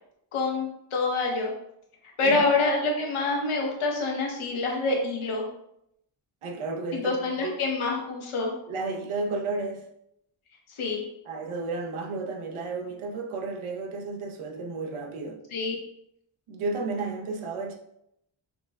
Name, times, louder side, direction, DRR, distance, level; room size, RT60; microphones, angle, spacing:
voice 1, 0.3-1.5 2.2-5.4 6.9-8.5 10.8-11.0 15.5-15.8, left 3 dB, 85° left, 0.9 m, -26 dB
voice 2, 6.4-7.5 8.7-9.8 11.3-15.4 16.5-17.7, right 3 dB, 90° right, 0.7 m, -32 dB
5.7 x 2.1 x 2.3 m
wide cardioid pair, 110°, 48 cm